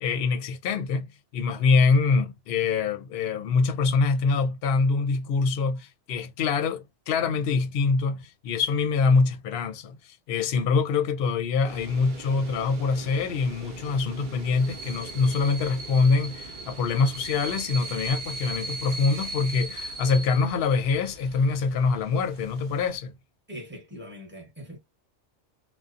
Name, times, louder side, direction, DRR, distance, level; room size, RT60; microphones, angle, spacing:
voice 1, 0.0-1.1 1.3-23.1, left 4 dB, 65° left, 0.7 m, -24 dB
sound 1, 11.6-23.0, right 2 dB, 50° right, 0.7 m, -39 dB
voice 2, 23.5-24.8, equal, 10° right, 0.9 m, -41 dB
2.5 x 2.1 x 2.4 m
omnidirectional pair, 1.2 m